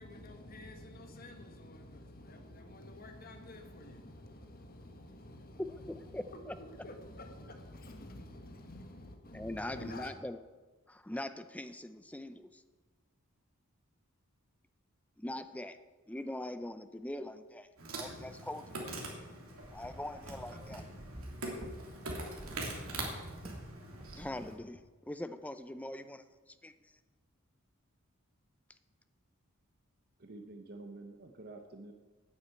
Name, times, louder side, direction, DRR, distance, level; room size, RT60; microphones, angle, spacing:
voice 1, 0.0-10.1, left 1 dB, 45° left, 1.5 m, -49 dB
voice 2, 5.6-6.5 9.3-10.4 10.9-12.6 15.2-15.8 16.1-17.7 17.9-18.8 19.7-20.9 24.1-27.0, left 1 dB, 5° left, 0.5 m, -42 dB
Insect, 17.8-24.5, right 2 dB, 75° right, 3.0 m, -43 dB
sound 1, 19.7-23.7 24.0-24.3, right 1 dB, 25° right, 1.3 m, -48 dB
sound 2, 22.4-24.9, left 1 dB, 80° left, 3.5 m, -60 dB
voice 3, 30.2-31.9, right 2 dB, 45° right, 1.0 m, -48 dB
9.8 x 9.3 x 8.3 m
head